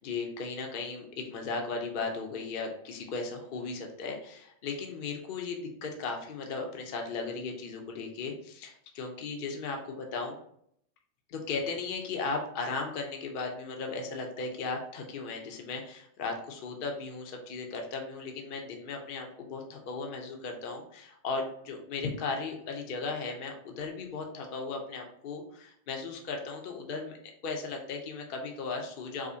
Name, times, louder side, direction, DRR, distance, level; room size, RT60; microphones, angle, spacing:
voice 1, 0.0-10.4 11.3-27.2 27.4-29.4, left 4 dB, 55° left, 2 dB, 0.7 m, -36 dB
4.8 x 2.1 x 2.6 m, 0.69 s
omnidirectional pair, 1.1 m